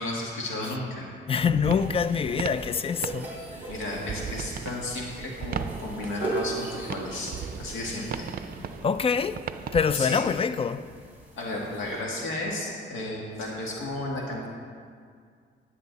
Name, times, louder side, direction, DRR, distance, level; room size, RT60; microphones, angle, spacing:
voice 1, 0.0-1.1 1.4-1.6 3.7-8.3 9.9-10.2 11.4-14.5, left 1 dB, 80° left, 1.9 m, -33 dB
voice 2, 1.3-3.3 3.6-3.7 8.8-9.4 9.7-10.9, left 6 dB, 30° left, 0.4 m, -25 dB
sound 1, 1.6-9.9, right 7 dB, 50° right, 0.5 m, -38 dB
sound 2, 1.7-12.0, right 2 dB, 10° right, 2.6 m, -40 dB
10.5 x 9.9 x 4.0 m
cardioid pair, 90°, 20 cm